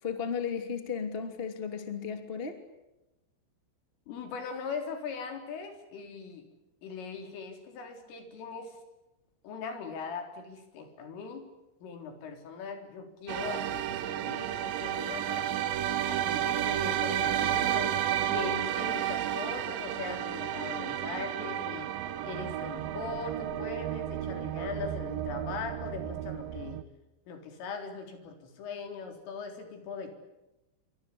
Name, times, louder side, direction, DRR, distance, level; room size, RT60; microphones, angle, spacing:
voice 1, 0.0-2.6, left 6 dB, 20° left, 7 dB, 1.8 m, -34 dB
voice 2, 4.1-6.4 6.8-8.8 9.4-11.5 11.8-15.5 16.1-17.9 18.2-21.9 22.2-26.8 27.3-30.1, left 5 dB, 80° left, 5 dB, 6.5 m, -40 dB
sound 1, 13.3-26.8, right 11 dB, 80° right, 2.0 m, -32 dB
27.5 x 25.0 x 8.6 m, 0.96 s
omnidirectional pair, 5.8 m